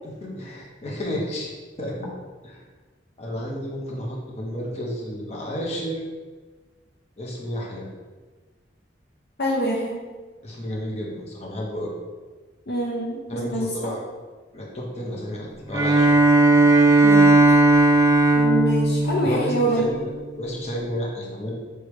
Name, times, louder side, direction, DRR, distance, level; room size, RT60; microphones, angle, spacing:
voice 1, 0.0-1.5 1.8-2.1 2.4-2.6 3.2-6.0 7.2-7.9 10.4-11.9 13.3-14.0 14.5-16.1 19.2-20.1 20.4-21.6, equal, 40° left, -2 dB, 0.9 m, -31 dB
voice 2, 9.4-10.0 12.7-13.7 17.0-17.3 18.4-19.8, right 1 dB, 65° left, -3 dB, 0.6 m, -25 dB
Bowed string instrument, 15.7-20.1, right 2 dB, 20° right, 0.3 m, -17 dB
4.7 x 3.2 x 3.1 m, 1.3 s
head